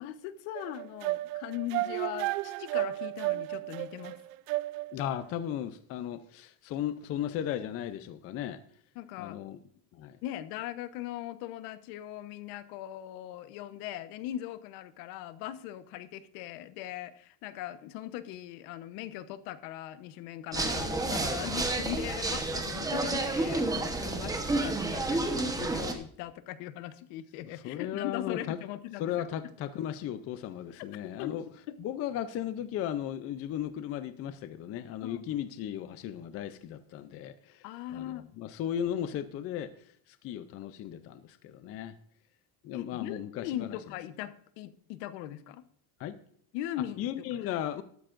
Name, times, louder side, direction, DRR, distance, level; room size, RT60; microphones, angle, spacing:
voice 1, 0.0-4.2 8.9-9.4 10.2-29.3 30.8-30.9 31.2-31.3 31.7-31.8 35.0-35.2 37.6-38.3 42.7-45.6 46.5-47.0 47.4-47.6, left 13 dB, 70° left, 1.1 m, -40 dB
sound 1, 0.6-5.1, right 19 dB, 85° right, 0.6 m, -33 dB
voice 2, 4.9-8.6 9.2-9.6 9.9-10.2 27.5-28.6 29.0-31.5 31.8-37.7 37.9-41.9 42.6-43.8 46.0-46.2 47.0-47.8, left 10 dB, 30° left, 0.5 m, -36 dB
sound 2, 20.5-25.9, right 2 dB, 10° right, 1.0 m, -30 dB
13.0 x 12.5 x 2.5 m
cardioid pair, 170°, 45 cm